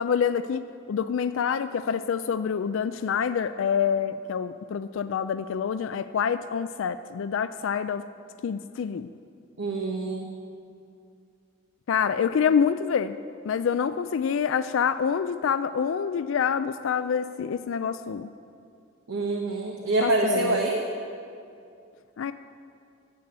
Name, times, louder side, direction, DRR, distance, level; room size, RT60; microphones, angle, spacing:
voice 1, 0.0-8.0 8.4-9.1 11.9-13.2 13.5-18.3 20.0-20.6 22.2-22.3, left 7 dB, 75° left, 12 dB, 0.4 m, -26 dB
voice 2, 9.6-10.3 19.1-20.8, right 2 dB, 80° right, 0 dB, 1.1 m, -26 dB
11.0 x 7.7 x 8.6 m, 2.4 s
head